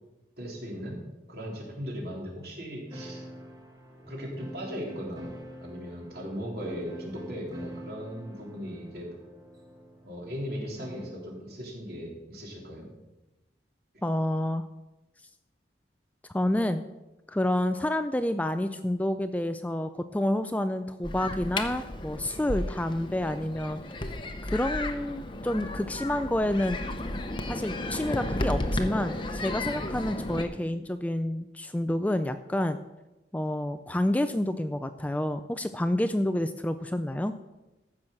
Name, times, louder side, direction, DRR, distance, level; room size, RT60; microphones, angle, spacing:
voice 1, 0.4-1.0 1.3-3.2 4.1-5.4 5.6-9.1 10.0-12.9, equal, 60° right, -2 dB, 3.3 m, -38 dB
sound 1, 2.9-11.3, equal, 20° right, 1.2 m, -45 dB
voice 2, 14.0-14.6 16.3-16.9 17.3-23.8 24.5-26.8 27.5-32.8 33.3-37.3, left 1 dB, 10° left, 9 dB, 0.4 m, -29 dB
sound 2, 21.0-30.4, left 1 dB, 25° left, 0.8 m, -33 dB
14.5 x 6.2 x 6.4 m, 1.0 s
head